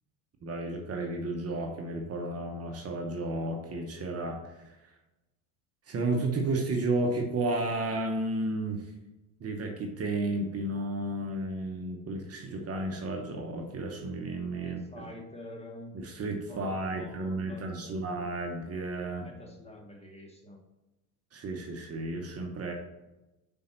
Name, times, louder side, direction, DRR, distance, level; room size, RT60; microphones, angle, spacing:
voice 1, 0.4-4.9 5.9-8.9 9.4-15.0 15.9-19.3 21.3-22.7, right 2 dB, 35° right, 2 dB, 1.0 m, -32 dB
voice 2, 14.6-15.9 16.5-18.2 19.2-20.6, left 1 dB, 15° left, 1 dB, 1.4 m, -47 dB
5.3 x 4.4 x 4.4 m, 1.0 s
hypercardioid pair, 90°, 44 cm